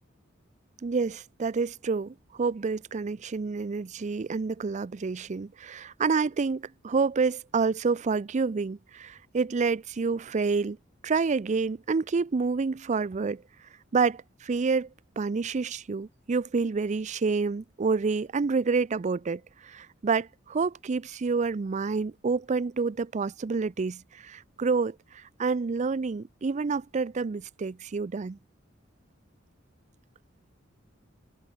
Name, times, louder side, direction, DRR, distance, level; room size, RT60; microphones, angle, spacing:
voice 1, 0.8-10.8 11.0-13.4 13.9-14.9 15.2-28.4, right 4 dB, 35° right, 0.4 m, -28 dB
head